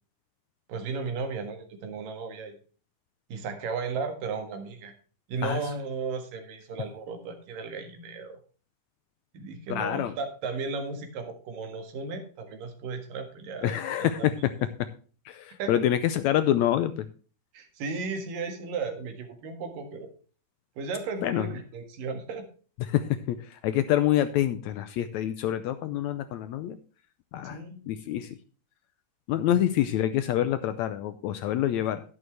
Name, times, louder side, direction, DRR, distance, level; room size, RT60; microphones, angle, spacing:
voice 1, 0.7-2.6 3.3-4.9 5.3-8.4 9.3-14.3 15.6-15.8 17.5-20.1 20.8-22.5 27.4-27.8 29.5-29.6, right 4 dB, 90° right, 6 dB, 3.4 m, -35 dB
voice 2, 9.7-10.1 13.6-14.5 14.8-14.9 15.3-17.1 21.2-21.5 22.9-26.8 27.3-27.6 27.9-28.4 29.3-32.0, left 12 dB, 80° left, 11 dB, 1.7 m, -26 dB
11.0 x 11.0 x 3.3 m, 0.38 s
omnidirectional pair, 3.8 m